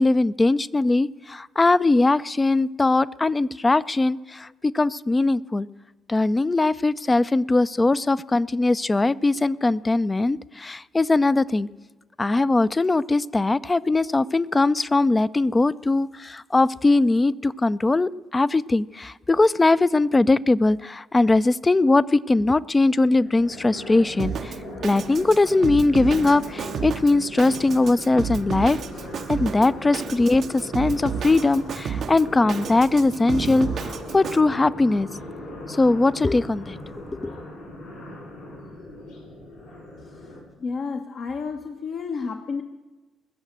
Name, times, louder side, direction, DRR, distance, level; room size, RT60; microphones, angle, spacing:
voice 1, 0.0-4.5 4.7-5.7 6.1-11.7 12.2-24.5 24.8-28.8 29.3-35.1 35.8-36.8 37.1-37.3, left 2 dB, 20° left, 18 dB, 0.5 m, -20 dB
sound 1, 23.1-40.4, left 1 dB, 75° left, 5.0 m, -38 dB
Drum kit, 24.2-34.4, right 7 dB, 50° right, 0.6 m, -32 dB
voice 2, 40.6-42.6, left 5 dB, 55° left, 4 dB, 1.0 m, -30 dB
20.5 x 7.3 x 7.8 m, 1.2 s
figure-of-eight pair, 45°, 0 cm